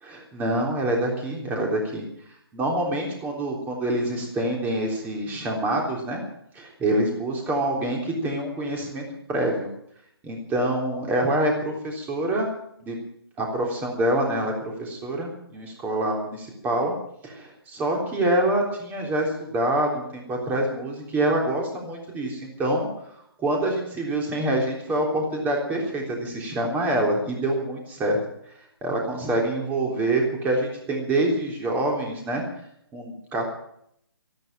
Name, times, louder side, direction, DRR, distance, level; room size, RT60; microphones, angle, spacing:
voice 1, 0.0-2.0 2.5-6.2 6.5-9.7 10.2-12.5 12.8-13.0 13.4-14.5 14.8-16.9 17.2-28.2 28.8-32.4 32.9-33.4, right 1 dB, 15° right, 0 dB, 3.6 m, -26 dB
13.5 x 13.0 x 7.6 m, 0.73 s
figure-of-eight pair, 145°, 13 cm